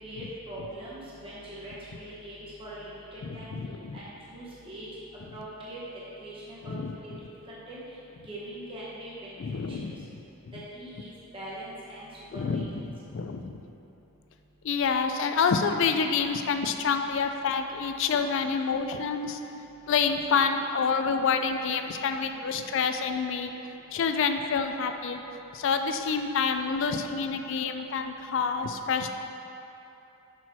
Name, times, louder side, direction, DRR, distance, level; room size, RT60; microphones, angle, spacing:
voice 1, 0.0-3.6 3.9-4.9 5.3-5.8 6.2-7.1 7.5-7.8 8.3-9.3 9.7-9.8 10.5-12.0 12.5-12.6 26.0-26.1, right 1 dB, 25° right, -7 dB, 0.8 m, -42 dB
voice 2, 3.2-4.0 6.7-6.9 9.4-10.1 10.5-10.6 12.3-13.6 14.6-19.4 19.9-23.5 23.9-25.2 25.5-29.1, left 5 dB, 60° left, 7 dB, 0.3 m, -28 dB
6.1 x 4.3 x 4.4 m, 2.9 s
head